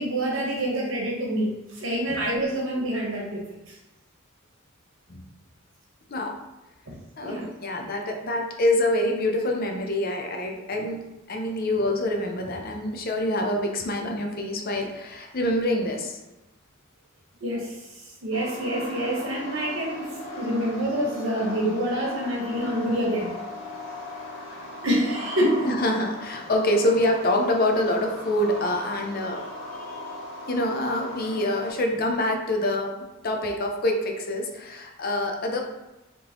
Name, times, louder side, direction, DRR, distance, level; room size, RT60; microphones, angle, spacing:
voice 1, 0.0-3.8 6.9-7.0 7.2-7.4 17.4-20.1 20.3-23.3 24.8-25.7, right 1 dB, 75° right, -3 dB, 1.2 m, -27 dB
voice 2, 7.2-11.0 11.3-16.2 25.6-30.0 30.5-32.9 33.2-35.6, left 1 dB, 45° left, 3 dB, 0.6 m, -26 dB
sound 1, 18.3-31.7, left 1 dB, 80° left, 1.4 m, -38 dB
3.7 x 3.7 x 2.9 m, 1.0 s
head